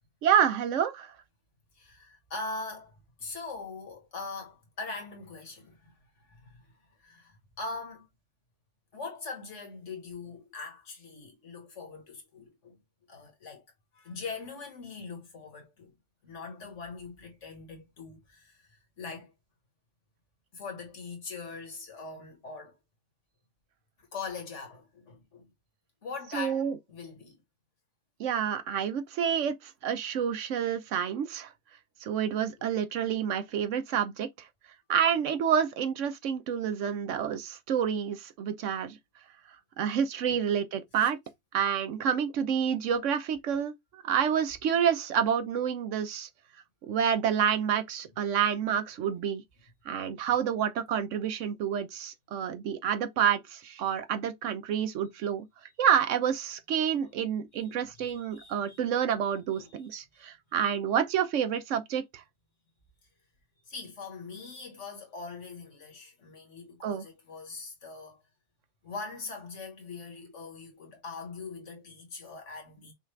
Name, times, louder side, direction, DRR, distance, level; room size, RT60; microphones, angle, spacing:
voice 1, 0.2-1.1 26.3-26.7 28.2-31.5 32.0-34.3 34.9-39.0 39.8-41.2 41.5-46.3 46.8-49.4 49.9-55.5 55.8-62.2 66.8-67.0, right 8 dB, 70° right, 0.9 m, -28 dB
voice 2, 1.8-6.7 7.0-8.1 8.9-12.8 13.1-13.7 13.9-15.9 16.2-19.3 20.5-22.8 24.0-25.5 26.0-27.4 40.3-40.4 41.0-41.1 57.0-57.1 57.5-58.8 59.5-59.8 60.2-60.3 63.7-68.2 68.8-72.9, left 4 dB, 65° left, 1.7 m, -42 dB
5.6 x 2.4 x 3.2 m
omnidirectional pair, 1.4 m